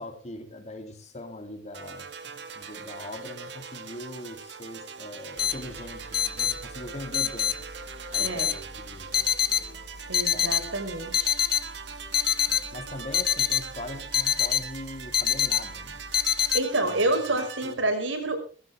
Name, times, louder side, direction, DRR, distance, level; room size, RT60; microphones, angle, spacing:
voice 1, 0.0-7.6 8.1-9.3 10.3-10.6 12.7-16.0 16.8-17.0 17.6-17.8, left 1 dB, 35° left, 5 dB, 2.9 m, -41 dB
sound 1, 1.7-17.7, right 5 dB, 65° right, 2.2 m, -41 dB
sound 2, 5.4-16.6, left 10 dB, 50° left, 1.2 m, -26 dB
voice 2, 10.1-11.4 16.5-18.4, right 2 dB, 85° right, 7 dB, 5.4 m, -28 dB
21.0 x 16.0 x 3.5 m, 0.39 s
head